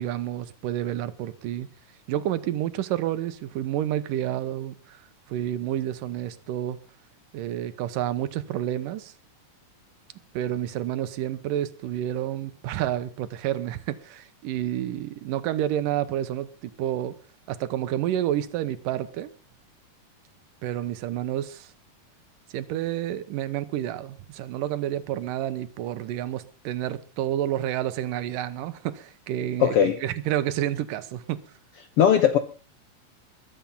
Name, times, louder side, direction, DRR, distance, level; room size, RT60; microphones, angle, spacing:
voice 1, 0.0-1.7 2.1-5.0 5.3-6.8 7.3-9.1 10.3-17.2 17.5-19.3 20.6-21.7 22.5-31.4, right 12 dB, 90° right, 2.6 m, -29 dB
voice 2, 29.6-30.0 32.0-32.4, left 8 dB, 70° left, 1.4 m, -18 dB
21.5 x 8.9 x 5.4 m
omnidirectional pair, 3.8 m